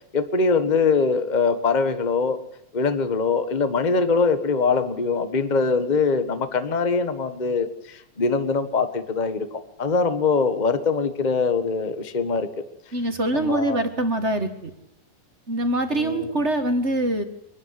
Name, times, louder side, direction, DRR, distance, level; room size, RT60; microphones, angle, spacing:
voice 1, 0.1-2.4 2.7-12.5 13.3-13.8 15.9-16.3, left 4 dB, 70° left, 10 dB, 0.4 m, -23 dB
voice 2, 12.9-14.7 15.5-17.2, right 1 dB, 30° right, 8 dB, 1.4 m, -24 dB
24.5 x 12.0 x 9.8 m, 0.82 s
omnidirectional pair, 3.5 m